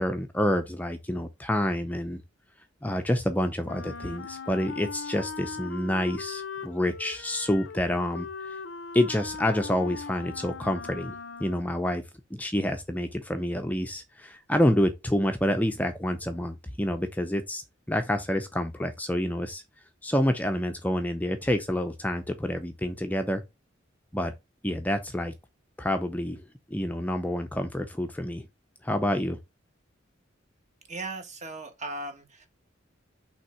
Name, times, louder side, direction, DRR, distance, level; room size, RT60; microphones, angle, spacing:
voice 1, 0.0-2.2 2.8-8.6 8.9-12.0 12.3-17.6 17.9-19.6 20.0-23.4 24.1-24.3 24.6-25.3 25.8-28.5 28.8-29.4, left 1 dB, 10° left, 0.6 m, -28 dB
Wind instrument woodwind instrument, 3.6-11.8, left 5 dB, 75° left, 0.5 m, -39 dB
voice 2, 30.9-32.5, right 2 dB, 40° right, 1.5 m, -37 dB
5.7 x 3.5 x 5.6 m
head